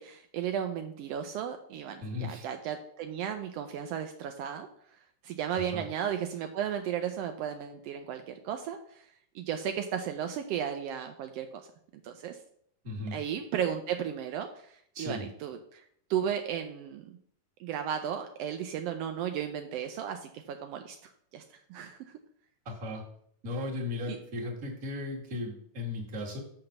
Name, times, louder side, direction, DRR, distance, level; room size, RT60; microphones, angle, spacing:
voice 1, 0.0-4.7 5.2-9.0 9.3-11.6 12.0-12.4 13.1-15.8 16.1-17.2 17.6-21.0 21.3-21.4 21.7-22.0 24.1-24.2, right 9 dB, 85° right, 6 dB, 1.4 m, -34 dB
voice 2, 2.0-2.5 5.6-5.8 12.8-13.2 14.9-15.3 22.6-23.0 23.4-26.4, left 2 dB, 35° right, -1 dB, 1.7 m, -36 dB
5.9 x 5.8 x 6.5 m, 0.67 s
omnidirectional pair, 3.4 m